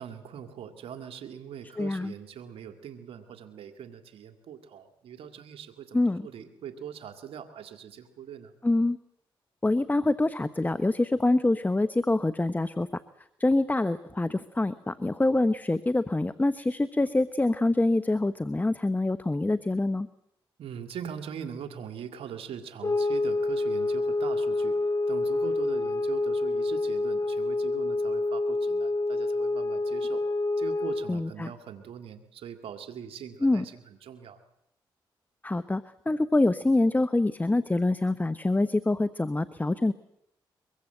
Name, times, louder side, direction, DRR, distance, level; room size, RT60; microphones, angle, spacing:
voice 1, 0.0-8.5 20.6-24.8 25.1-30.2 30.6-34.4, right 8 dB, 85° right, 8 dB, 2.2 m, -42 dB
voice 2, 1.8-2.1 5.9-6.3 8.6-9.0 9.6-12.9 13.4-20.1 31.1-31.5 33.4-33.6 35.4-39.9, left 2 dB, 20° left, 13 dB, 1.0 m, -25 dB
sound 1, 22.8-31.2, left 2 dB, 35° left, 3.4 m, -27 dB
23.0 x 22.5 x 8.0 m, 0.76 s
cardioid pair, 60°, 9 cm